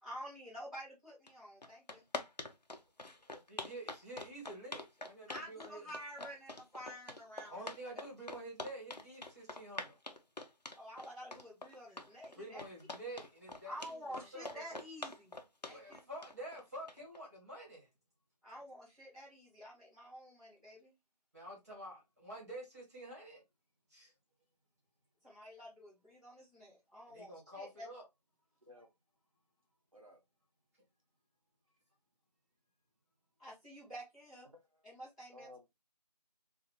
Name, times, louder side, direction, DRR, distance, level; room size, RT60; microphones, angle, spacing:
voice 1, 0.0-2.0 5.3-7.6 10.7-12.6 13.6-15.4 15.6-16.0 18.4-20.9 25.2-27.9 33.4-34.5 34.8-35.5, equal, 10° left, 1.3 m, -49 dB
sound 1, 1.3-1.4 1.6-17.2, left 2 dB, 80° left, 0.8 m, -45 dB
voice 2, 3.1-5.9 7.5-10.0 12.4-14.6 15.7-17.9 21.3-23.4 23.9-24.1 27.1-28.0, right 1 dB, 25° right, 1.9 m, -49 dB
voice 3, 34.5-34.9 35.3-35.8, left 1 dB, 55° right, 0.8 m, -57 dB
3.9 x 2.7 x 2.8 m
figure-of-eight pair, 170°, 21 cm